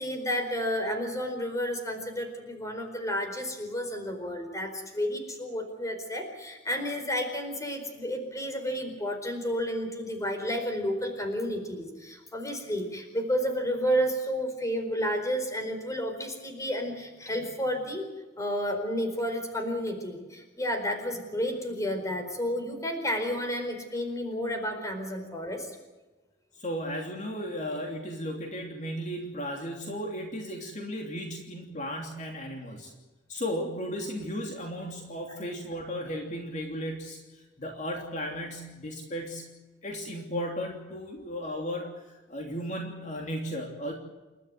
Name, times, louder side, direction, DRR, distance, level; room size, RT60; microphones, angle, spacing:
voice 1, 0.0-18.0 18.4-25.7 33.6-33.7 35.3-35.4, equal, 20° left, 6 dB, 4.5 m, -31 dB
voice 2, 26.6-32.9 33.3-39.5 39.8-41.9 42.3-43.9, equal, 40° left, 2 dB, 3.1 m, -35 dB
29.0 x 13.0 x 9.4 m, 1.2 s
head